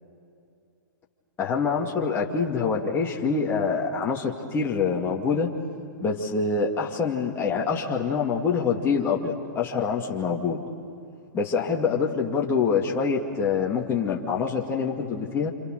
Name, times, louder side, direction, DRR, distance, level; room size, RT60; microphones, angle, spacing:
voice 1, 1.4-5.5 6.0-10.6 11.3-15.5, left 5 dB, 20° left, -1 dB, 2.4 m, -25 dB
28.5 x 28.0 x 6.7 m, 2.4 s
hypercardioid pair, 115°, 11 cm